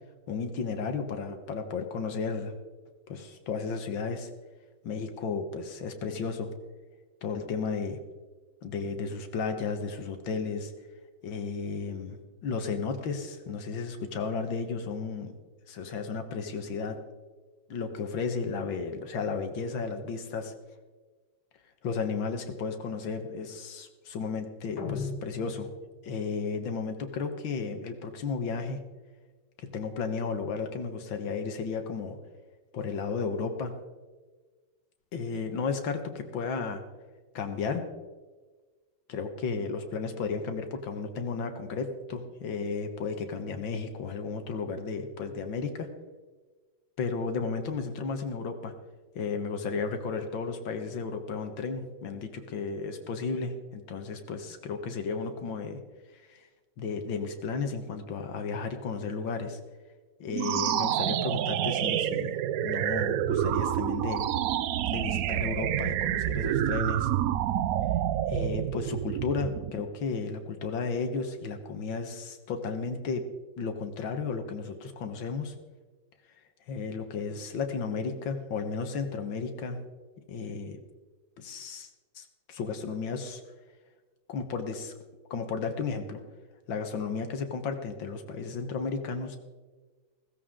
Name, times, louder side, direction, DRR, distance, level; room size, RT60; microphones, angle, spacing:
voice 1, 0.3-2.5 3.1-4.3 4.8-6.5 7.2-8.0 8.6-10.7 11.2-15.3 15.7-17.0 17.7-20.5 21.8-25.7 26.0-28.8 29.6-32.2 32.7-33.7 35.1-36.8 37.3-37.8 39.1-45.9 47.0-48.7 49.2-55.8 56.1-56.4 56.8-59.6 60.2-64.3 64.9-67.1 68.3-73.2 73.6-75.5 76.7-79.8 80.3-80.8 81.4-81.9 82.2-83.4 84.3-84.9 85.3-86.2 86.7-89.4, left 5 dB, 90° left, 7 dB, 2.1 m, -33 dB
sound 1, 24.8-26.2, left 5 dB, 65° left, 1.8 m, -37 dB
sound 2, 60.3-69.8, right 11 dB, 70° right, 0.8 m, -28 dB
16.0 x 15.0 x 3.8 m, 1.3 s
omnidirectional pair, 2.0 m